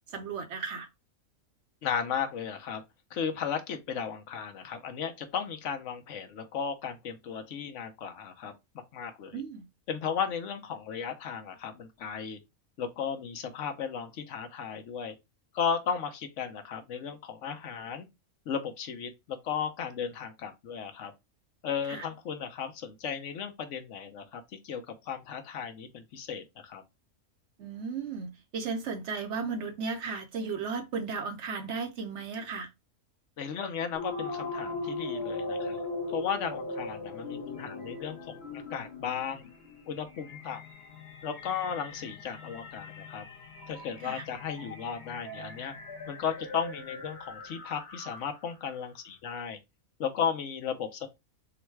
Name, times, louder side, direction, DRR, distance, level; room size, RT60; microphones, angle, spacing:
voice 1, 0.1-0.9 9.3-9.6 21.9-22.1 27.6-32.7 44.0-44.2, right 5 dB, 60° right, 0.9 m, -35 dB
voice 2, 1.8-2.8 3.1-8.5 8.9-9.4 9.9-12.4 12.8-15.1 15.5-18.1 18.5-21.1 21.6-26.8 33.4-35.8 36.1-39.5 39.9-40.6 41.2-43.3 43.7-45.7 46.1-49.6 50.0-51.1, left 7 dB, 65° left, 1.0 m, -35 dB
sound 1, 33.9-48.5, left 3 dB, 50° left, 1.3 m, -40 dB
3.9 x 2.2 x 4.5 m
omnidirectional pair, 1.5 m